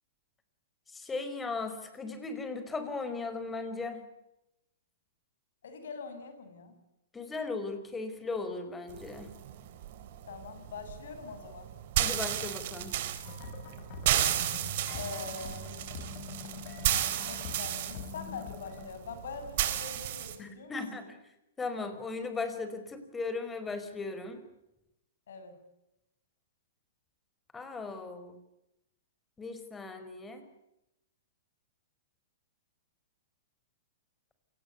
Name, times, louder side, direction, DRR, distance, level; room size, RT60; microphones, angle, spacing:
voice 1, 0.9-4.0 7.1-9.3 12.0-12.9 20.4-21.2 21.6-24.4 27.5-28.4 29.4-30.4, left 3 dB, 15° left, 9 dB, 5.2 m, -37 dB
voice 2, 5.6-6.8 10.3-11.7 15.0-15.7 17.2-21.0 25.3-25.6, left 5 dB, 70° left, 8 dB, 7.5 m, -43 dB
sound 1, 8.9-20.4, right 12 dB, 55° right, 3.8 m, -33 dB
sound 2, 13.2-18.9, left 7 dB, 45° left, 6.8 m, -45 dB
28.0 x 19.5 x 8.3 m, 0.88 s
hypercardioid pair, 115°, 0 cm